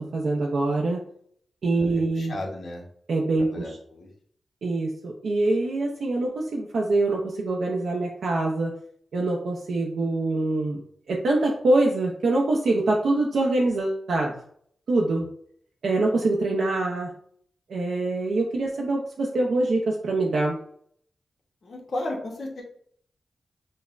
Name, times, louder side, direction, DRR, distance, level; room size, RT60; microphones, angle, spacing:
voice 1, 0.1-1.0 1.6-2.3 3.1-3.8 4.6-8.7 9.1-10.8 11.1-14.3 14.9-15.3 15.8-17.1 17.7-20.6, right 2 dB, 80° right, -2 dB, 0.5 m, -24 dB
voice 2, 1.9-2.8 3.5-4.1 21.6-22.6, left 1 dB, 65° left, -2 dB, 0.8 m, -34 dB
5.2 x 2.1 x 2.4 m, 0.63 s
cardioid pair, 70°, 0 cm